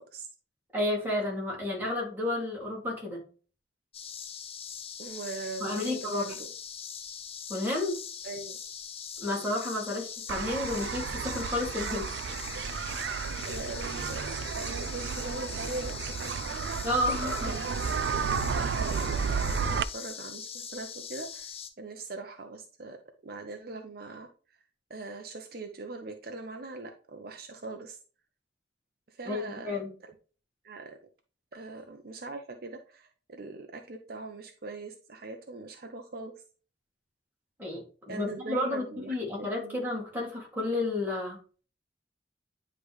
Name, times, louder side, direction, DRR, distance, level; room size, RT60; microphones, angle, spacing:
voice 1, 0.7-3.2 5.6-6.3 7.5-7.9 9.2-12.1 16.8-17.5 29.3-29.9 37.6-37.8 38.1-41.4, left 2 dB, 10° right, -3 dB, 2.5 m, -31 dB
sound 1, 3.9-21.7, left 7 dB, 35° left, 0.8 m, -42 dB
voice 2, 5.0-6.5 8.2-8.6 13.4-16.2 16.5-16.9 17.2-17.7 18.2-21.5 21.8-23.0 23.2-24.3 24.9-28.0 29.1-30.1 30.6-31.0 31.5-36.3 38.1-39.8, right 3 dB, 60° right, 4 dB, 0.8 m, -41 dB
sound 2, 10.3-19.8, right 6 dB, 80° right, 0.4 m, -32 dB
9.9 x 3.4 x 3.1 m, 0.37 s
head